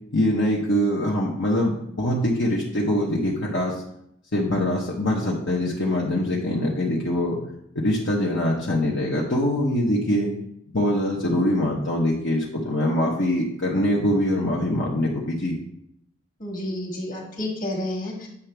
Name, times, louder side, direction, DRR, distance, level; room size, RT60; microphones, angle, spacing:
voice 1, 0.1-3.8 4.3-7.4 7.7-10.3 10.7-15.6, left 1 dB, 60° left, -4 dB, 1.1 m, -23 dB
voice 2, 16.4-18.3, left 1 dB, 40° left, -1 dB, 1.8 m, -30 dB
8.3 x 5.9 x 3.4 m, 0.75 s
head